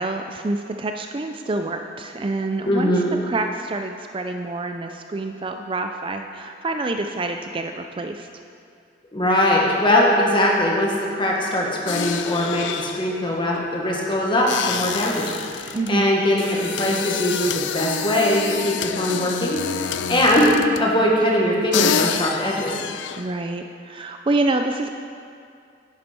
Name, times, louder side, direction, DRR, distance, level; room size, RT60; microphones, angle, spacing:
voice 1, 0.0-2.9 3.2-8.3 15.7-16.1 23.2-25.0, right 2 dB, 30° right, 5 dB, 0.4 m, -27 dB
voice 2, 2.7-3.1 9.1-22.7, left 1 dB, 25° left, -2 dB, 1.6 m, -21 dB
sound 1, 11.9-21.0 21.5-21.6 21.7-23.3, left 8 dB, 80° left, 0.5 m, -28 dB
10.5 x 10.0 x 4.4 m, 2.4 s
head